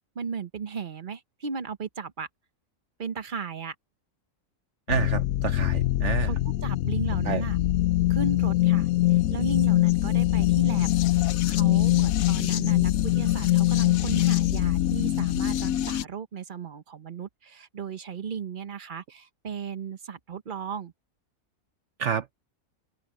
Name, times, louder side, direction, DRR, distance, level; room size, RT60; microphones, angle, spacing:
voice 1, 0.1-2.3 3.0-3.7 6.2-6.4 6.6-7.6 8.1-10.9 11.1-20.9, right 5 dB, 40° right, 1.0 m, -35 dB
sound 1, 4.9-16.0, left 15 dB, 85° left, 1.1 m, -23 dB
voice 2, 4.9-6.3 7.2-7.4 22.0-22.3, right 8 dB, 65° right, 1.0 m, -29 dB
open air
omnidirectional pair, 1.4 m